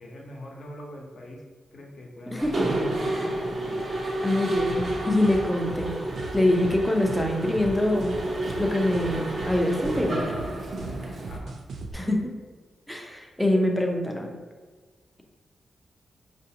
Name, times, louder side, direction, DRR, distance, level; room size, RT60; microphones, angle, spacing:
voice 1, 0.0-1.4 1.7-3.9 11.3-11.6, left 1 dB, 60° left, -1 dB, 0.8 m, -43 dB
voice 2, 2.3-2.7 4.2-6.0 6.3-8.2 8.6-10.4 11.9-12.3 12.9-14.4, left 1 dB, 5° left, 1 dB, 0.6 m, -25 dB
Mechanisms, 2.4-11.4, right 1 dB, 45° right, 0.8 m, -30 dB
sound 1, 4.5-11.9, right 3 dB, 75° right, 0.4 m, -38 dB
4.9 x 2.6 x 2.8 m, 1.4 s
cardioid pair, 85°, 0 cm